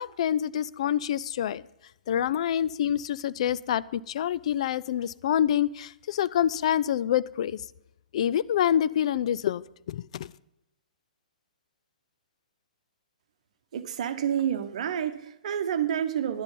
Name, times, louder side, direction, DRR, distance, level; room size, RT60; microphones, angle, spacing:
voice 1, 0.0-1.6 2.1-7.6 8.1-9.6 9.9-10.3, left 10 dB, 45° left, 18 dB, 0.3 m, -26 dB
voice 2, 13.7-16.4, right 9 dB, 50° right, 11 dB, 1.0 m, -29 dB
11.0 x 9.8 x 5.4 m, 0.86 s
figure-of-eight pair, 120°, 5 cm